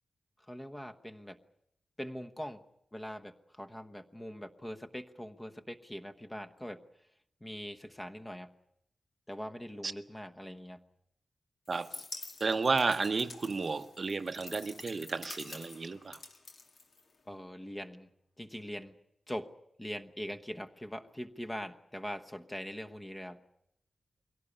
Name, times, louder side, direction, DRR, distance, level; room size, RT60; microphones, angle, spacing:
voice 1, 0.5-1.4 2.0-2.6 2.9-6.8 7.4-8.5 9.3-10.8 17.3-18.1 18.4-18.9 19.3-19.5 19.8-23.4, equal, 15° left, 1.1 m, -42 dB
sound 1, 11.6-17.4, left 3 dB, 65° left, 2.2 m, -48 dB
voice 2, 12.4-16.2, right 4 dB, 45° right, 0.8 m, -32 dB
23.0 x 17.0 x 9.8 m
wide cardioid pair, 125°, 0 cm